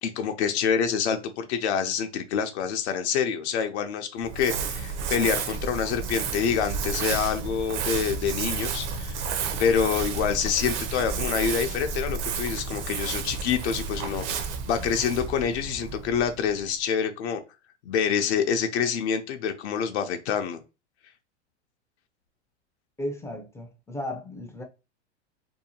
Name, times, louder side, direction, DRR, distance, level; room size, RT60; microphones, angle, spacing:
voice 1, 0.0-9.3 9.6-17.4 17.9-20.6, left 7 dB, 70° left, 0.5 m, -27 dB
Crumpling crinkling, 4.2-16.7, right 5 dB, 50° right, 0.6 m, -31 dB
voice 2, 23.0-24.6, left 1 dB, 10° left, 0.3 m, -35 dB
2.7 x 2.2 x 2.7 m
hypercardioid pair, 105°, 34 cm